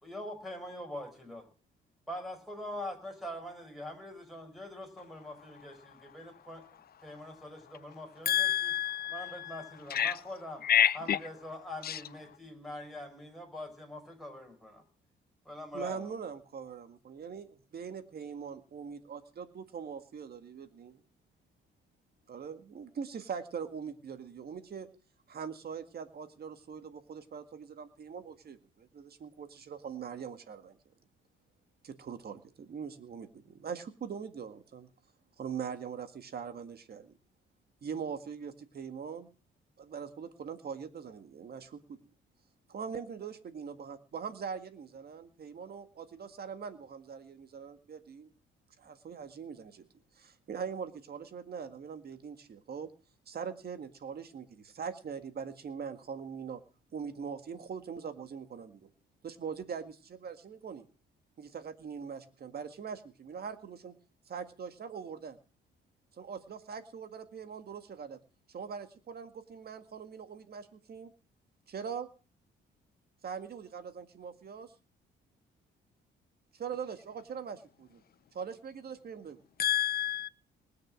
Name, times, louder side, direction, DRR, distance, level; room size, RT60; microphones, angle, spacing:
voice 1, 0.0-1.5 2.1-8.8 9.1-10.6 10.9-14.8 15.5-16.1, left 1 dB, ahead, 5.3 m, -43 dB
voice 2, 8.3-9.3 9.9-10.1 10.7-11.2 79.6-80.3, left 10 dB, 50° left, 0.7 m, -27 dB
voice 3, 15.7-21.0 22.3-24.9 25.3-30.8 31.8-34.9 35.4-37.1 37.8-39.3 39.8-42.0 42.7-48.3 48.8-49.9 50.2-52.3 52.7-52.9 53.3-56.6 56.9-58.9 59.2-60.9 61.4-63.9 64.3-65.4 66.1-68.2 68.5-71.1 71.7-72.1 73.2-74.7 76.5-78.0 78.3-79.4, right 6 dB, 50° right, 1.9 m, -42 dB
20.0 x 6.7 x 7.4 m
cardioid pair, 90°, 20 cm